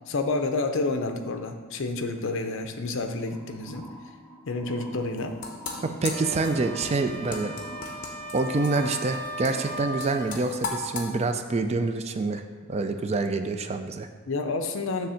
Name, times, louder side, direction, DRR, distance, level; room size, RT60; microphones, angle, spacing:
voice 1, 0.1-3.9 4.5-5.4 14.3-15.1, left 3 dB, 60° left, 6 dB, 0.6 m, -29 dB
sound 1, 3.3-9.9, equal, 5° left, 1.1 m, -46 dB
sound 2, 5.0-11.1, left 4 dB, 40° left, 1.0 m, -37 dB
voice 2, 5.8-7.5 8.3-12.4 12.7-14.1, right 3 dB, 30° right, 7 dB, 0.3 m, -27 dB
sound 3, 6.1-10.3, right 1 dB, 85° right, 0.8 m, -37 dB
7.0 x 3.4 x 6.2 m, 1.5 s
head